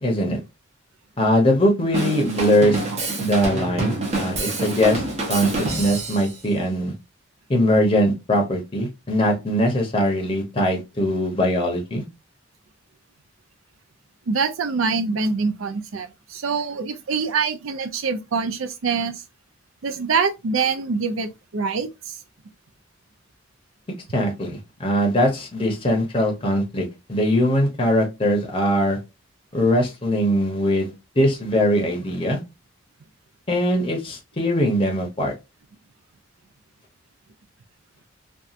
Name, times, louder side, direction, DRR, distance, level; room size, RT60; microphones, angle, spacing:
voice 1, 0.0-0.4 1.2-2.8 3.2-5.0 5.3-6.9 7.5-12.0 24.1-29.0 29.5-32.4 33.5-35.3, equal, 25° left, 0.6 m, -21 dB
Drum kit / Drum, 1.9-6.3, right 2 dB, 30° right, 0.6 m, -26 dB
voice 2, 14.3-19.2 19.8-22.2, right 5 dB, 85° right, 0.5 m, -25 dB
2.8 x 2.2 x 2.4 m
head